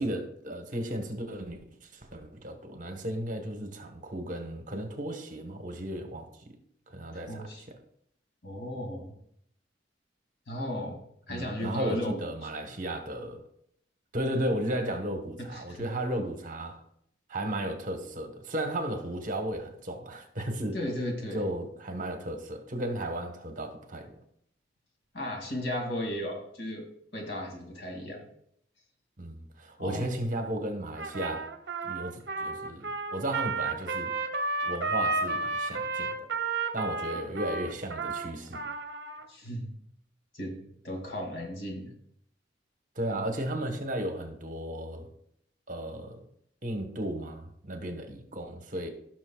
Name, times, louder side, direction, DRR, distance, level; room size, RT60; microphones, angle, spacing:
voice 1, 0.0-6.5 6.9-7.5 11.3-13.4 14.1-16.8 17.3-20.8 21.3-24.2 29.2-31.5 31.8-34.1 34.6-36.1 36.7-38.6 43.0-45.1 45.7-46.3 46.6-48.9, right 1 dB, 45° right, 5 dB, 1.2 m, -34 dB
voice 2, 7.3-7.6 8.4-9.1 10.5-12.2 12.6-12.7 15.4-15.9 20.7-21.5 25.1-26.9 27.1-28.2 29.8-30.2 37.1-37.3 39.3-39.7 40.3-41.9, equal, 80° left, 1 dB, 2.4 m, -35 dB
Trumpet, 31.0-39.3, right 3 dB, 65° right, 0.8 m, -32 dB
16.0 x 6.1 x 2.3 m, 0.69 s
head